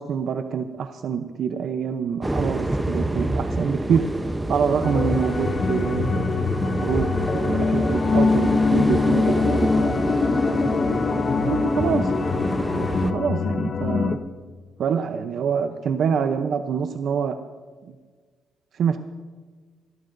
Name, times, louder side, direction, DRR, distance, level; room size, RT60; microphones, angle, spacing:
voice 1, 0.0-4.1 4.5-6.4 6.8-10.1 11.5-12.1 12.8-14.2 14.8-17.4 17.8-17.9 18.7-19.0, right 7 dB, 65° right, 8 dB, 0.7 m, -26 dB
sound 1, 2.2-13.1, right 1 dB, 10° right, 0.8 m, -27 dB
sound 2, 4.8-14.2, left 4 dB, 45° left, 1.0 m, -23 dB
29.5 x 12.0 x 2.6 m, 1.5 s
cardioid pair, 90°, 0 cm